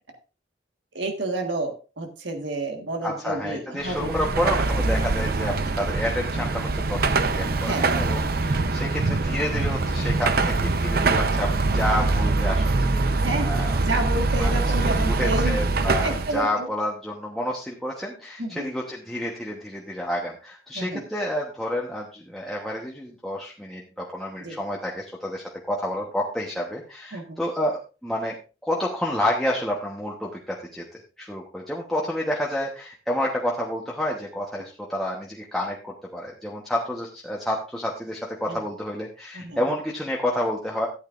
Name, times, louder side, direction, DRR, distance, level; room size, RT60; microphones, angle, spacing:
voice 1, 0.9-4.1 7.6-8.1 13.2-15.7 16.0-16.7 18.4-18.6 20.7-21.0 24.4-24.6 27.1-27.4 38.5-38.6 39.3-39.7, right 2 dB, 80° right, 4 dB, 1.6 m, -30 dB
voice 2, 3.0-13.7 14.4-14.5 14.8-28.4 28.6-40.9, left 1 dB, ahead, -3 dB, 1.1 m, -29 dB
Car passing by / Traffic noise roadway noise / Engine, 3.8-16.4, right 3 dB, 55° right, 0.8 m, -23 dB
13.5 x 9.1 x 2.5 m, 0.33 s
head